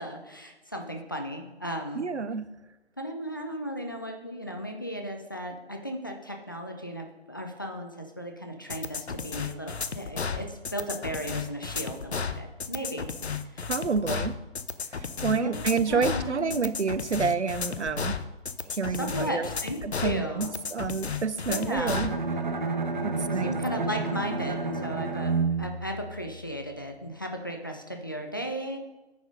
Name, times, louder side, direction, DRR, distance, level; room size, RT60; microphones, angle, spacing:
voice 1, 0.0-2.1 3.0-13.1 13.5-13.7 15.3-16.7 18.9-20.6 21.5-22.0 23.4-28.8, equal, 20° left, 2 dB, 0.5 m, -36 dB
voice 2, 1.9-2.5 13.7-14.4 14.9-18.2 18.7-19.5 19.8-22.1 23.0-23.9, right 5 dB, 85° right, 14 dB, 0.6 m, -29 dB
sound 1, 8.7-22.2, left 5 dB, 70° left, 0.7 m, -33 dB
Bowed string instrument, 21.7-26.8, right 4 dB, 45° right, 0.9 m, -30 dB
9.2 x 5.2 x 5.1 m, 1.1 s
figure-of-eight pair, 145°, 33 cm